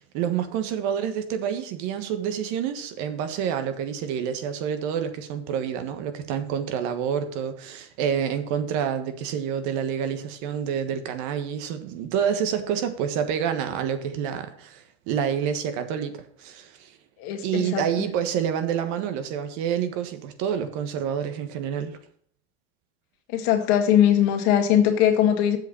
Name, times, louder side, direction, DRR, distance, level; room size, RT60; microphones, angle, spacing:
voice 1, 0.0-17.0 17.4-22.0, right 8 dB, 60° right, 1.5 m, -28 dB
voice 2, 17.2-17.8 23.3-25.6, left 10 dB, 60° left, 2.0 m, -20 dB
7.6 x 5.2 x 7.0 m
supercardioid pair, 100°, 32 cm